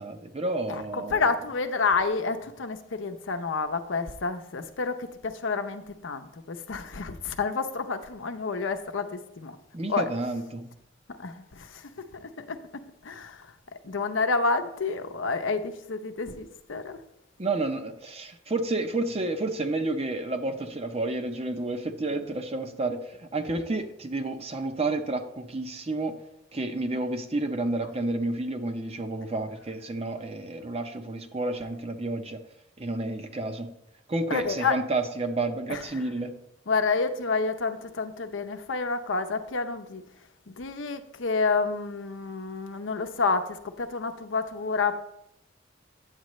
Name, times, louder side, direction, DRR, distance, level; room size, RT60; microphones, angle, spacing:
voice 1, 0.0-1.3 9.7-10.7 17.4-26.1 26.5-32.4 32.8-33.7 34.1-36.3, right 2 dB, 30° right, 6 dB, 0.7 m, -30 dB
voice 2, 0.7-9.6 9.9-10.1 11.2-11.8 12.2-12.6 13.0-13.5 13.8-17.0 34.3-34.8 35.7-35.8 36.7-40.0 40.5-44.9, left 4 dB, 85° left, 8 dB, 0.7 m, -29 dB
9.0 x 7.5 x 3.1 m, 0.80 s
head